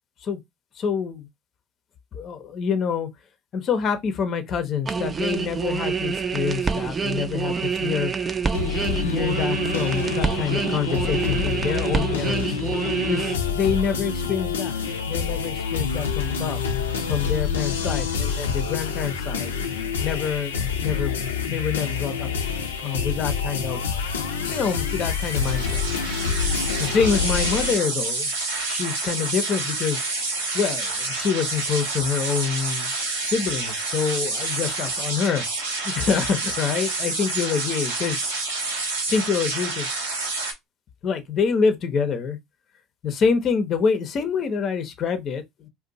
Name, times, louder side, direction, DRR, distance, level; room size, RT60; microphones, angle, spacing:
voice 1, 0.8-1.3 2.1-3.1 3.5-8.1 9.0-12.6 13.1-14.7 15.1-16.6 17.1-19.6 20.0-22.3 22.8-23.8 24.5-25.8 26.8-28.3 28.6-30.1 30.5-32.9 33.2-38.2 39.1-39.9 41.0-42.4 43.0-45.7, left 6 dB, 50° left, 0.6 m, -26 dB
sound 1, 4.9-13.3, right 5 dB, 30° right, 0.5 m, -26 dB
sound 2, 8.5-27.8, left 6 dB, 90° left, 0.5 m, -27 dB
sound 3, 24.9-40.5, right 3 dB, 90° right, 0.9 m, -28 dB
2.5 x 2.2 x 3.9 m
hypercardioid pair, 70°, 0 cm